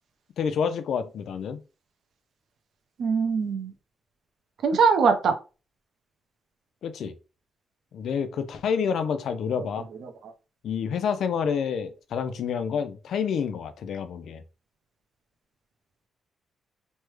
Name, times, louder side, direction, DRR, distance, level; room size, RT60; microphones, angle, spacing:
voice 1, 0.4-1.6 6.8-7.1 7.9-9.9 10.6-14.4, left 7 dB, 75° left, 0.4 m, -28 dB
voice 2, 3.0-3.7 4.6-5.3 10.0-10.1, right 5 dB, 70° right, 0.7 m, -22 dB
3.2 x 2.2 x 3.1 m
cardioid pair, 105°, 0 cm